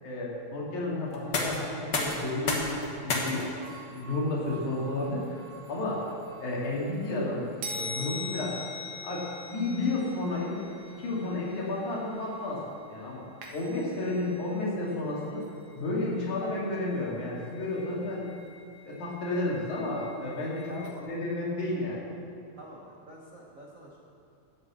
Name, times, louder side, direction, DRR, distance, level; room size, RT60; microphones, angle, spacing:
voice 1, 0.0-3.6 3.9-5.4 5.7-6.1 6.4-8.6 9.0-10.6 10.9-12.6 12.9-13.2 13.5-15.4 15.7-18.3 18.8-20.7 21.0-22.0, left 2 dB, 70° left, -5 dB, 3.8 m, -32 dB
sound 1, 1.1-12.9, left 2 dB, 45° left, 1.7 m, -38 dB
sound 2, 3.6-7.2 7.6-12.8 13.4-14.6 14.9-21.0, left 1 dB, 55° right, 2.1 m, -44 dB
voice 2, 20.7-21.0 22.6-24.0, right 1 dB, 80° right, -3 dB, 0.7 m, -46 dB
12.0 x 8.3 x 7.5 m, 2.6 s
omnidirectional pair, 3.6 m